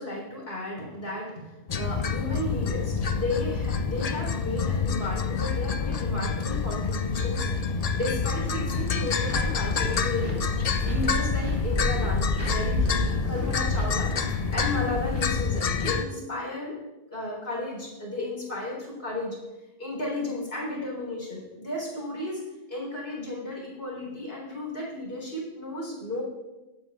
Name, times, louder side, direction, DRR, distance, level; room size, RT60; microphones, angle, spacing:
voice 1, 0.0-14.1 14.5-16.8 17.1-19.4 19.8-22.4 22.7-26.2, left 2 dB, 65° left, -3 dB, 3.9 m, -33 dB
sound 1, 1.7-16.0, left 5 dB, 45° left, 0.5 m, -28 dB
sound 2, 9.2-15.3, equal, 80° right, 2.5 m, -31 dB
19.5 x 8.7 x 2.4 m, 1.1 s
omnidirectional pair, 1.1 m